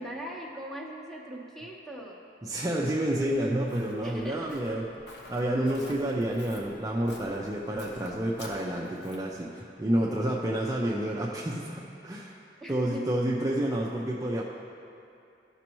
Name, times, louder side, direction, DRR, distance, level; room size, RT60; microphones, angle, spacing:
voice 1, 0.0-2.2 4.0-4.6 12.6-13.1, equal, ahead, -3 dB, 0.9 m, -40 dB
voice 2, 2.4-4.8 5.3-12.3 12.7-14.4, right 1 dB, 20° right, -4 dB, 0.5 m, -29 dB
Walk footsteps, 3.1-9.4, left 1 dB, 75° left, 1.0 m, -50 dB
13.5 x 6.1 x 3.0 m, 2.7 s
head